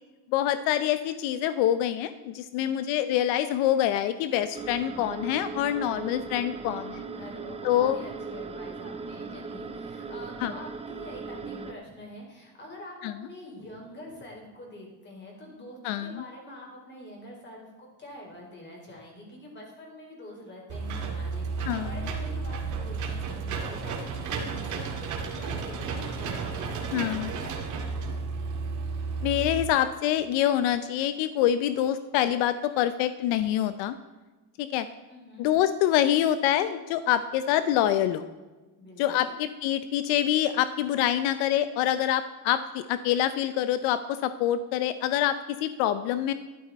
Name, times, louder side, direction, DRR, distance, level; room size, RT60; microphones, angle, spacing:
voice 1, 0.3-7.0 7.6-8.0 10.4-10.5 13.0-13.1 15.8-16.2 21.7-21.9 26.9-27.3 29.2-34.0 34.6-34.9 35.4-38.3 39.0-46.3, left 11 dB, 85° left, 12 dB, 0.8 m, -26 dB
voice 2, 2.5-2.9 7.1-25.1 25.4-27.9 35.1-35.5 38.8-39.3, left 1 dB, 25° left, -1 dB, 4.5 m, -45 dB
sound 1, 4.5-11.7, right 4 dB, 15° right, 0.6 m, -38 dB
Engine / Mechanisms, 20.7-29.7, right 4 dB, 45° right, 2.2 m, -33 dB
12.5 x 11.0 x 4.2 m, 1.2 s
cardioid pair, 145°, 42 cm